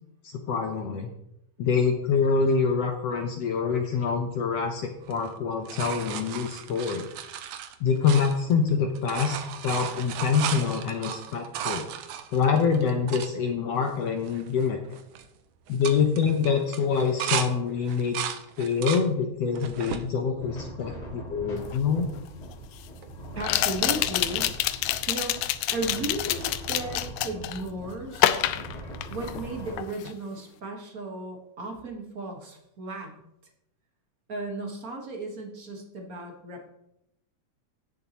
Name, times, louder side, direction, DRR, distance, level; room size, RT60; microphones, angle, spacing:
voice 1, 0.2-1.1 1.6-7.1 7.8-9.4 9.6-11.8 12.3-14.8 15.7-22.1, left 6 dB, 70° left, 4 dB, 1.6 m, -25 dB
sound 1, 5.0-8.7 8.9-13.3 13.9-14.0 14.2-14.6 14.9-15.3 15.7-17.5 17.9-19.1 19.5-20.1 20.7-21.4 23.0-23.1, right 10 dB, 80° right, 2.3 m, -35 dB
sound 2, 20.4-29.7, right 1 dB, 40° left, 3.3 m, -41 dB
sound 3, 21.7-21.8 23.4-27.6 28.2-29.5 29.8-30.1, left 14 dB, 85° left, 2.1 m, -27 dB
voice 2, 23.3-24.5 25.1-28.5 29.1-33.2 34.3-36.7, right 2 dB, 45° right, 2 dB, 1.2 m, -35 dB
17.0 x 7.1 x 3.0 m, 0.81 s
omnidirectional pair, 3.7 m